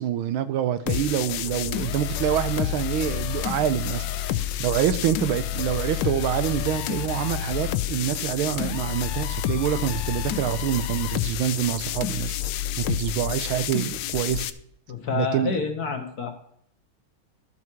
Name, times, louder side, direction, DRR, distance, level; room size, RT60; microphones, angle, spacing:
voice 1, 0.0-12.4 12.8-14.4 15.1-15.6, right 11 dB, 75° right, 12 dB, 1.4 m, -26 dB
sound 1, 0.9-14.5, left 12 dB, 75° left, 1.0 m, -29 dB
voice 2, 14.9-16.3, left 5 dB, 55° left, 5 dB, 1.3 m, -28 dB
12.5 x 6.0 x 4.5 m, 0.68 s
omnidirectional pair, 2.4 m